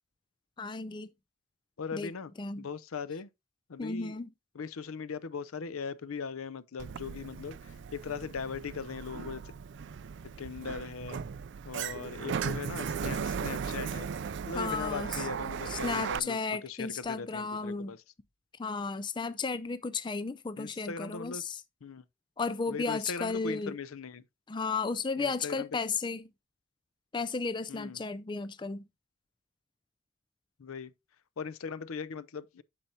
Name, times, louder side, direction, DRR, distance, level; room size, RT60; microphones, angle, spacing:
voice 1, 0.6-1.1 1.9-2.1 2.4-2.7 3.8-4.3 14.5-15.2 15.7-17.9 18.6-21.6 22.4-23.7 24.5-26.2 27.1-28.8, left 4 dB, 20° left, 0.4 m, -34 dB
voice 2, 1.8-2.3 2.6-3.3 3.7-4.1 4.5-9.5 10.2-11.2 11.6-18.0 20.6-21.4 21.8-22.0 22.7-24.2 25.2-25.7 27.7-28.0 30.6-30.9 31.4-32.6, left 5 dB, 85° left, 0.6 m, -39 dB
Sliding door, 6.8-16.2, right 6 dB, 55° right, 0.3 m, -37 dB
8.7 x 6.8 x 2.8 m
head